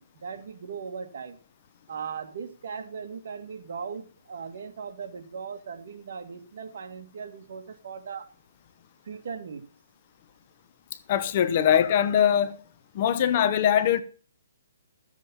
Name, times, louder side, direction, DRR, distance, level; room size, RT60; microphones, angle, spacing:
voice 1, 0.0-1.4 1.9-8.3 9.1-9.7, right 6 dB, 60° right, 2.0 m, -38 dB
voice 2, 11.1-12.6 12.9-14.0, left 9 dB, 35° left, 0.8 m, -22 dB
14.5 x 7.3 x 5.5 m
hypercardioid pair, 165°, 0 cm